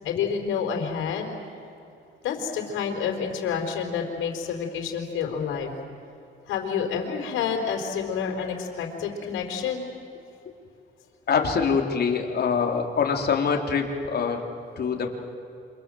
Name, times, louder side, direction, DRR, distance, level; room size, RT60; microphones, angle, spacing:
voice 1, 0.0-1.3 2.2-5.7 6.5-9.8, left 7 dB, 85° left, 2 dB, 4.3 m, -29 dB
voice 2, 11.3-14.4 14.8-15.1, left 6 dB, 55° left, 2 dB, 3.7 m, -24 dB
28.0 x 26.0 x 7.8 m, 2.7 s
cardioid pair, 90°, 20 cm